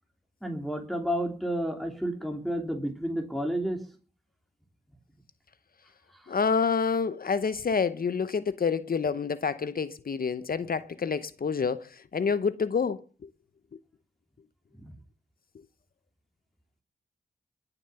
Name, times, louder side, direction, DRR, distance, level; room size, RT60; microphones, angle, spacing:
voice 1, 0.4-3.8 6.1-6.3 14.8-14.9, equal, ahead, 2.9 m, -31 dB
voice 2, 6.3-13.3, left 5 dB, 55° left, 0.9 m, -28 dB
21.0 x 7.0 x 6.9 m
cardioid pair, 45°, 18 cm